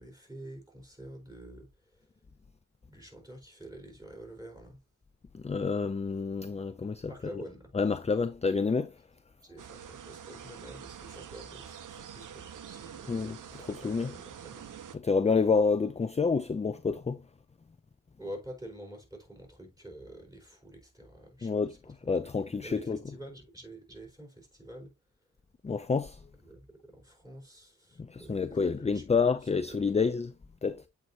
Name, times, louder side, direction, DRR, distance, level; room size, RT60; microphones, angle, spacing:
voice 1, 0.0-1.7 1.9-2.0 2.9-4.8 7.1-7.7 9.4-13.2 13.8-14.8 18.2-22.1 22.6-24.9 26.4-29.0 29.7-29.8, right 1 dB, 10° right, 4.3 m, -47 dB
voice 2, 5.3-7.4 7.7-8.9 13.1-14.2 14.9-17.2 21.4-23.0 25.6-26.2 28.0-30.3 30.6-30.8, left 5 dB, 20° left, 0.4 m, -29 dB
sound 1, 9.6-15.0, right 8 dB, 75° right, 0.7 m, -46 dB
8.0 x 4.7 x 2.8 m
cardioid pair, 50°, 32 cm